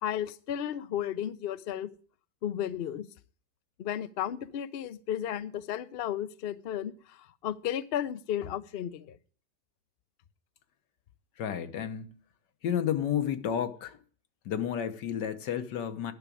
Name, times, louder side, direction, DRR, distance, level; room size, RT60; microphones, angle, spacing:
voice 1, 0.0-1.9 2.4-3.1 3.8-6.9 7.4-9.2, left 10 dB, 70° left, 0.5 m, -33 dB
voice 2, 11.4-12.1 12.6-14.0 14.4-16.1, left 9 dB, 90° left, 1.6 m, -31 dB
10.5 x 6.0 x 8.4 m
omnidirectional pair, 1.8 m